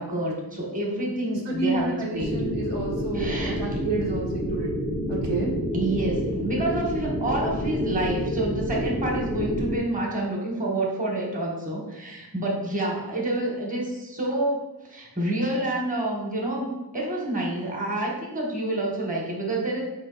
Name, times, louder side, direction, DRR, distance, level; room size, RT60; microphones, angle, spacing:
voice 1, 0.0-2.4 3.1-3.6 5.7-19.8, right 1 dB, 20° right, -2 dB, 1.1 m, -28 dB
voice 2, 1.4-4.7 5.1-5.5, right 3 dB, 85° right, -4 dB, 1.2 m, -30 dB
sound 1, 2.2-9.8, equal, ahead, 0.4 m, -28 dB
4.9 x 2.5 x 3.8 m, 1.0 s
wide cardioid pair, 90°, 42 cm